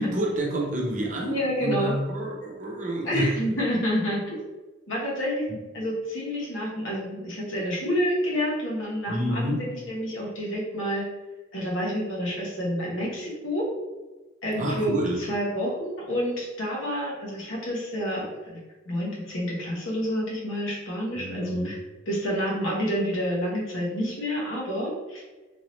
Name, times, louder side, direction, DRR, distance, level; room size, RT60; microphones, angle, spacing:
voice 1, 0.0-3.4 5.5-5.6 9.1-9.6 14.6-15.2 21.2-21.7, right 1 dB, 40° right, -2 dB, 0.7 m, -29 dB
voice 2, 1.2-2.0 3.0-4.4 4.9-5.5 5.7-11.1 11.5-13.7 14.4-18.6 18.9-21.8 22.1-25.2, equal, 80° left, -4 dB, 1.2 m, -28 dB
3.7 x 2.7 x 3.1 m, 1.2 s
head